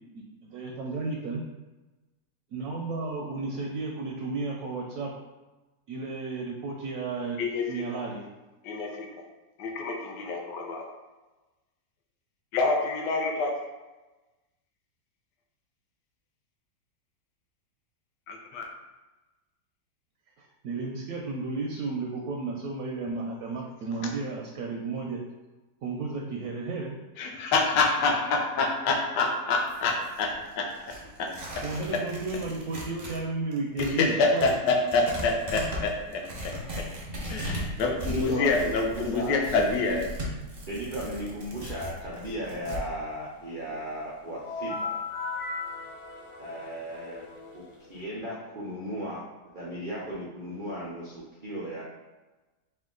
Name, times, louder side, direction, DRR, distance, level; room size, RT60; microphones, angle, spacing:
voice 1, 0.4-1.4 2.5-5.1 5.9-7.4 7.7-8.2 20.4-25.2 25.8-27.0 31.6-34.5, right 3 dB, 70° right, 0 dB, 0.9 m, -33 dB
voice 2, 7.4-7.9 8.6-9.3 9.6-10.9 12.5-13.6 18.3-18.7 24.0-24.1 27.2-30.3 30.6-31.3 33.8-36.2 37.3-40.0, left 3 dB, 75° left, 1 dB, 1.2 m, -27 dB
Tearing, 29.5-33.2 33.5-42.8, equal, 40° right, 0.6 m, -38 dB
voice 3, 38.1-39.4 40.6-44.9 46.4-47.2 47.5-47.6 47.9-49.3 49.5-51.8, right 1 dB, 90° right, -5 dB, 0.4 m, -36 dB
sound 1, 44.4-48.0, left 4 dB, 60° left, 0.8 m, -37 dB
4.4 x 2.4 x 3.7 m, 1.1 s
omnidirectional pair, 1.9 m